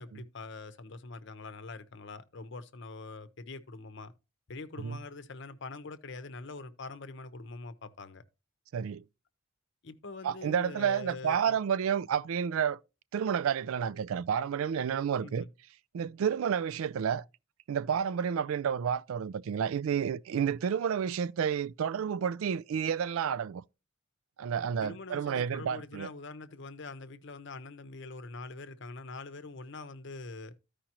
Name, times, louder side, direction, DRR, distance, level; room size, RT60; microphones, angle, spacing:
voice 1, 0.0-4.1 4.5-8.2 9.8-11.6 15.2-15.5 24.8-30.5, left 3 dB, 55° left, 0.7 m, -44 dB
voice 2, 8.7-9.0 10.2-12.8 13.1-15.4 15.9-17.2 17.7-23.6 24.4-26.1, right 7 dB, 70° right, 0.3 m, -30 dB
14.0 x 5.0 x 2.9 m
head